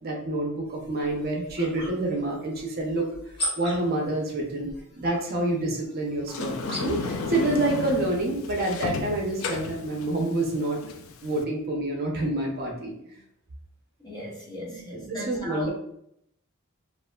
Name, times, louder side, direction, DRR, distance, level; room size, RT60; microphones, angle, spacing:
voice 1, 0.0-3.1 3.6-4.7 5.0-10.8 11.2-13.2 14.7-15.7, right 2 dB, 45° right, 0 dB, 0.6 m, -28 dB
sound 1, 0.7-7.2, equal, 45° left, 1.2 m, -39 dB
Sliding door, 6.3-11.4, left 4 dB, 65° left, 0.3 m, -34 dB
voice 2, 14.0-15.7, left 1 dB, 20° left, -3 dB, 0.6 m, -37 dB
3.2 x 2.4 x 2.2 m, 0.74 s
head